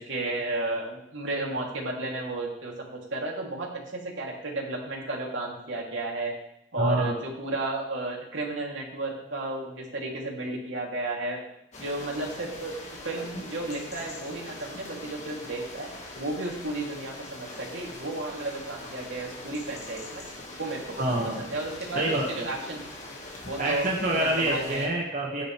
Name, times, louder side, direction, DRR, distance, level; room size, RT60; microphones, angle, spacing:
voice 1, 0.0-6.3 6.7-11.4 11.8-12.7 13.0-15.9 16.2-20.2 20.6-21.0 21.4-22.8 23.5-23.8 24.1-24.9, right 2 dB, 75° right, -2 dB, 2.9 m, -33 dB
voice 2, 6.8-7.1 21.0-21.4 21.9-22.5 23.6-25.4, right 1 dB, 40° right, -3 dB, 1.8 m, -27 dB
sound 1, 11.7-24.9, left 2 dB, 40° left, 1.8 m, -42 dB
13.5 x 10.0 x 3.4 m, 0.77 s
head